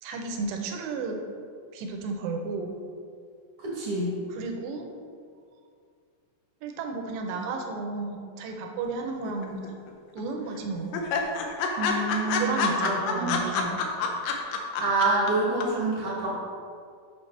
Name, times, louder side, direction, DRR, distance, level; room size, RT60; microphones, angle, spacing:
voice 1, 0.0-1.2 1.7-2.8 4.3-4.9 6.6-9.6 10.1-11.0 12.4-14.0, right 3 dB, 85° right, 3 dB, 3.0 m, -33 dB
voice 2, 3.6-4.2 11.8-12.9 13.2-13.3 14.8-16.4, right 2 dB, 60° right, -6 dB, 1.6 m, -27 dB
sound 1, 9.2-9.9 10.2-10.3 10.5-10.6 10.9-15.3 15.6-15.7, left 5 dB, 85° left, 1.9 m, -28 dB
8.6 x 5.8 x 3.3 m, 2.2 s
omnidirectional pair, 4.9 m